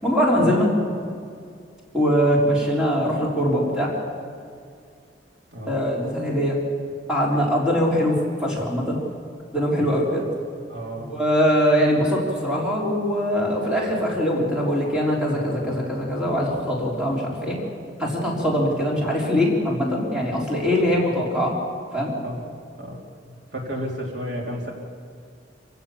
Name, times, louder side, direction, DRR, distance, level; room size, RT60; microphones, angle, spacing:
voice 1, 0.0-0.7 1.9-3.9 5.7-6.6 7.1-9.0 9.5-10.3 11.1-17.6 18.0-21.6 21.9-22.1, equal, 5° right, -4 dB, 4.0 m, -22 dB
voice 2, 5.5-5.9 9.8-10.0 10.7-11.1 22.2-22.4 22.8-24.7, equal, 60° right, -1 dB, 3.5 m, -33 dB
26.5 x 16.0 x 7.3 m, 2.2 s
head